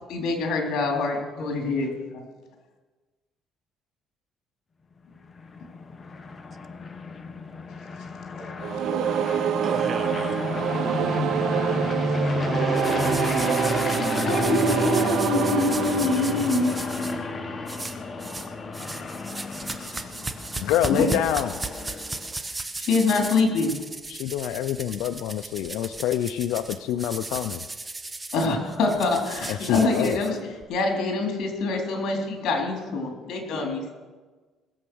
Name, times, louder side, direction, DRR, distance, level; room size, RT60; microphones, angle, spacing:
voice 1, 0.1-1.9 11.0-11.2 12.2-12.3 14.2-17.2 19.8-20.1 20.9-21.1 22.5-23.7 28.3-33.9, left 3 dB, 70° left, 2 dB, 3.7 m, -25 dB
sound 1, 5.2-22.3, left 3 dB, 30° left, 1.3 m, -31 dB
sound 2, 8.6-17.5, right 9 dB, 70° right, 0.8 m, -27 dB
voice 2, 9.6-10.4 13.4-15.1, right 5 dB, 40° right, 12 dB, 1.0 m, -35 dB
sound 3, 12.7-17.1 17.7-18.5 18.7-30.6, right 3 dB, 20° right, 1.1 m, -36 dB
voice 3, 20.6-21.6 24.1-27.6 29.5-30.2 31.9-32.0 33.2-33.3, left 11 dB, 85° left, 9 dB, 0.5 m, -27 dB
20.0 x 7.8 x 6.3 m, 1.3 s
cardioid pair, 105°, 0 cm